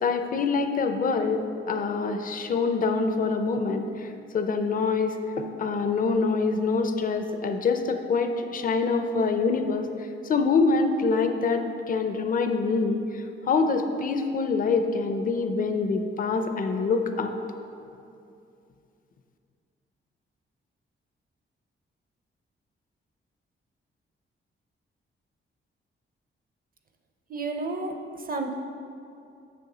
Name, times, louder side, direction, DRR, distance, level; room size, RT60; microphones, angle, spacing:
voice 1, 0.0-4.1 4.3-5.2 5.6-9.9 10.2-17.3, left 4 dB, 40° left, 7 dB, 0.5 m, -25 dB
voice 2, 27.3-28.5, right 3 dB, 45° right, 4 dB, 0.7 m, -31 dB
6.9 x 6.5 x 4.9 m, 2.6 s
wide cardioid pair, 145°, 21 cm